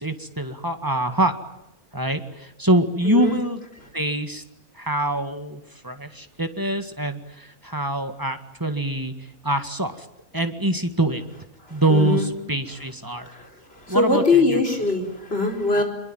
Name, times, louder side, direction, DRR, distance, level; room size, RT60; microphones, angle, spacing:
voice 1, 0.0-1.3 1.9-3.6 3.9-4.4 4.8-10.1 10.3-11.2 11.7-13.3 13.9-14.6, right 1 dB, 15° right, 8 dB, 1.8 m, -24 dB
voice 2, 3.0-3.4 11.7-12.3 12.7-12.8 13.2-13.5 13.7-15.8, left 3 dB, 40° left, 3 dB, 4.7 m, -22 dB
25.0 x 22.5 x 9.2 m, 0.87 s
omnidirectional pair, 1.6 m